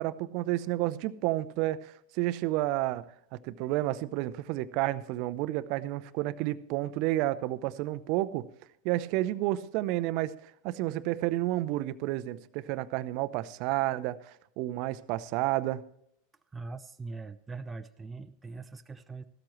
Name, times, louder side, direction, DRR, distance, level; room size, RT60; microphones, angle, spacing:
voice 1, 0.0-3.0 3.3-8.5 8.8-15.8, right 16 dB, 55° right, 16 dB, 0.7 m, -31 dB
voice 2, 16.5-19.2, right 3 dB, 15° right, 8 dB, 0.7 m, -41 dB
16.0 x 13.0 x 3.1 m, 0.72 s
hypercardioid pair, 95°, 0 cm